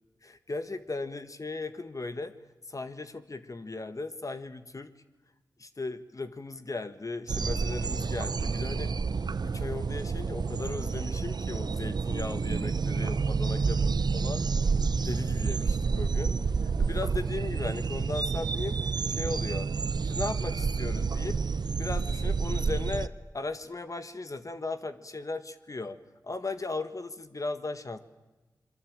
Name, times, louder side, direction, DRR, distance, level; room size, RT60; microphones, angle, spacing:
voice 1, 0.2-2.3 2.7-4.9 5.6-8.9 9.4-14.5 15.0-16.4 16.6-18.8 19.1-19.7 20.0-21.4 21.7-28.0, left 3 dB, 50° left, 10 dB, 1.6 m, -37 dB
sound 1, 7.3-23.1, right 5 dB, 70° right, 0.8 m, -29 dB
26.5 x 22.5 x 8.9 m, 1.2 s
cardioid pair, 40°, 7 cm